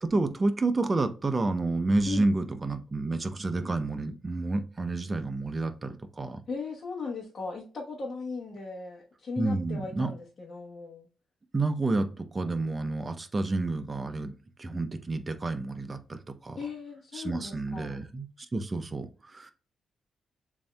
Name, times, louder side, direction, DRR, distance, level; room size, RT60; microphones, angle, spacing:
voice 1, 0.0-6.4 9.4-10.1 11.5-14.3 14.6-16.6 17.1-19.5, right 2 dB, 25° right, 9 dB, 0.6 m, -30 dB
voice 2, 2.1-2.4 6.5-11.1 16.6-18.1, left 4 dB, 45° left, -3 dB, 1.0 m, -38 dB
7.0 x 2.6 x 2.2 m, 0.37 s
cardioid pair, 105°, 0 cm